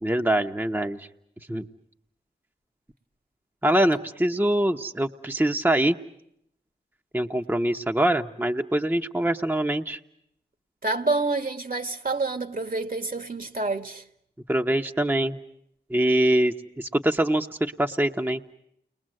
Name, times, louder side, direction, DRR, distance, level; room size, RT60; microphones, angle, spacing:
voice 1, 0.0-1.1 1.5-1.6 3.6-6.0 7.1-10.0 14.5-15.4 15.9-18.4, right 1 dB, 10° right, 1.1 m, -24 dB
voice 2, 10.8-14.0, right 3 dB, 55° right, 1.9 m, -28 dB
29.5 x 21.5 x 7.8 m
wide cardioid pair, 60°, 18 cm